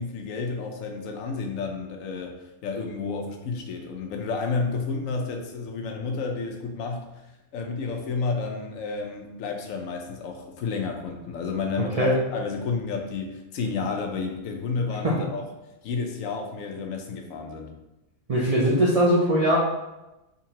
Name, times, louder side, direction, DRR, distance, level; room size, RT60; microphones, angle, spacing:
voice 1, 0.0-7.1 7.5-15.5 15.8-17.7, left 4 dB, 70° left, 3 dB, 0.9 m, -31 dB
voice 2, 18.3-19.6, right 1 dB, 75° right, -5 dB, 0.3 m, -20 dB
3.8 x 2.9 x 2.8 m, 0.98 s
omnidirectional pair, 1.5 m